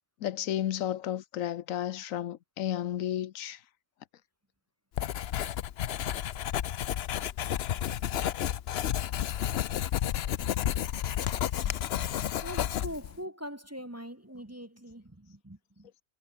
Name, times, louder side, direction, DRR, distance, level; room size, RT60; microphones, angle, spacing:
voice 1, 0.2-3.6, left 11 dB, 90° left, 1.2 m, -32 dB
Writing, 5.0-13.2, left 11 dB, 60° left, 0.8 m, -31 dB
voice 2, 10.4-10.7 11.5-15.9, equal, 15° right, 1.1 m, -43 dB
omnidirectional pair, 1.3 m